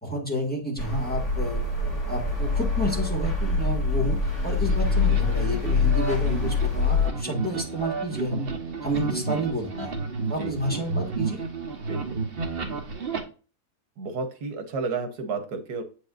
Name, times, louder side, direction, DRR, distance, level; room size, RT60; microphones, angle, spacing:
voice 1, 0.0-1.6 2.1-8.5 8.8-9.9 10.3-11.4, equal, 5° left, -1 dB, 1.8 m, -30 dB
sound 1, 0.8-7.1, left 4 dB, 50° left, 2.5 m, -25 dB
sound 2, 4.2-13.2, right 4 dB, 40° right, 1.2 m, -32 dB
voice 2, 10.4-10.8 11.9-12.2 14.0-15.8, right 4 dB, 90° right, 7 dB, 1.6 m, -32 dB
7.9 x 5.3 x 2.5 m, 0.36 s
omnidirectional pair, 1.6 m